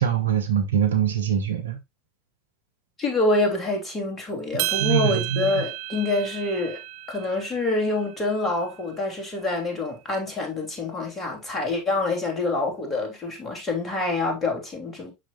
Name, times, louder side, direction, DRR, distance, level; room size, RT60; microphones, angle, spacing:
voice 1, 0.0-1.8 4.8-5.6, right 9 dB, 75° right, 1.0 m, -23 dB
voice 2, 3.0-6.8 7.1-15.1, left 2 dB, 20° left, 3.2 m, -26 dB
sound 1, 4.6-9.0, right 15 dB, 55° right, 0.6 m, -33 dB
7.7 x 6.1 x 2.5 m
figure-of-eight pair, 80°, 0 cm